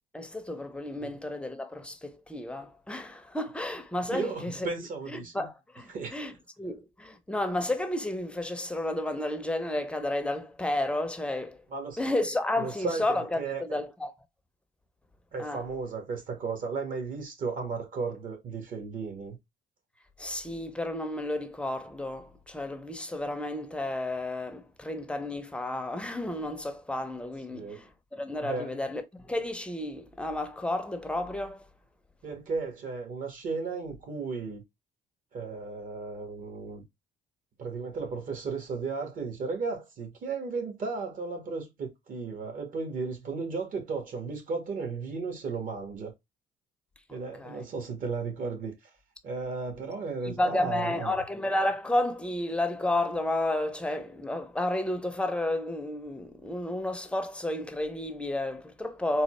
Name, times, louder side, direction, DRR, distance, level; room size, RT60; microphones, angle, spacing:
voice 1, 0.1-4.7 5.1-11.6 12.0-14.1 15.4-15.6 20.2-31.7 47.4-47.7 50.2-59.2, left 1 dB, 5° left, 0.6 m, -32 dB
voice 2, 4.1-5.5 5.9-6.2 11.7-12.0 12.6-13.6 15.3-19.4 27.5-27.8 28.4-28.7 32.2-34.6 35.3-36.8 37.6-46.1 47.1-48.9 49.2-51.1, right 4 dB, 55° right, 1.7 m, -35 dB
3.9 x 2.4 x 3.1 m
cardioid pair, 110°, 17 cm